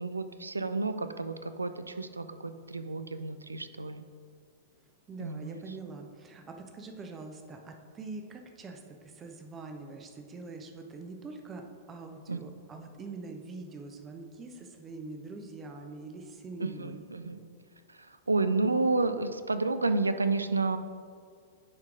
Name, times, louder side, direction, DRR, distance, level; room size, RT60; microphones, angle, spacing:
voice 1, 0.0-4.0 5.2-5.6 12.3-12.4 16.6-17.4 18.1-20.8, right 3 dB, 85° right, 10 dB, 0.4 m, -30 dB
voice 2, 5.1-17.0, right 3 dB, 20° right, 4 dB, 0.8 m, -44 dB
9.6 x 4.5 x 3.7 m, 2.2 s
figure-of-eight pair, 100°, 0 cm